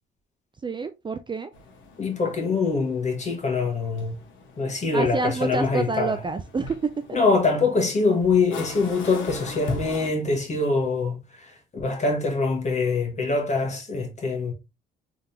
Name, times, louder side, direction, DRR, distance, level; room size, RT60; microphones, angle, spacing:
voice 1, 0.6-1.5 4.9-7.2, right 4 dB, 25° right, 0.4 m, -28 dB
sound 1, 1.5-10.1, left 3 dB, 75° left, 1.4 m, -40 dB
voice 2, 2.0-4.2 4.6-6.2 7.1-14.5, left 3 dB, 35° left, 1.6 m, -24 dB
3.7 x 3.4 x 2.8 m
cardioid pair, 90°, 20 cm